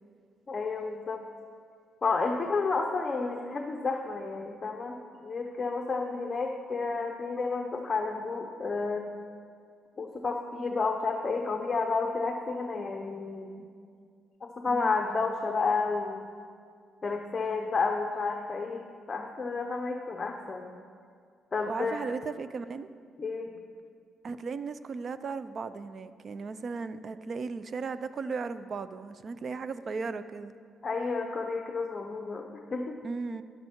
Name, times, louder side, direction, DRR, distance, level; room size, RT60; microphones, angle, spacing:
voice 1, 0.5-1.2 2.0-5.0 5.2-9.1 10.0-13.7 14.6-16.3 17.0-20.8 21.5-22.0 23.2-23.5 30.8-33.0, left 4 dB, 35° left, 2 dB, 0.9 m, -31 dB
voice 2, 21.7-22.9 24.2-30.5 33.0-33.4, right 4 dB, 45° right, 13 dB, 0.5 m, -36 dB
12.0 x 11.0 x 4.5 m, 2.2 s
cardioid pair, 90°, 0 cm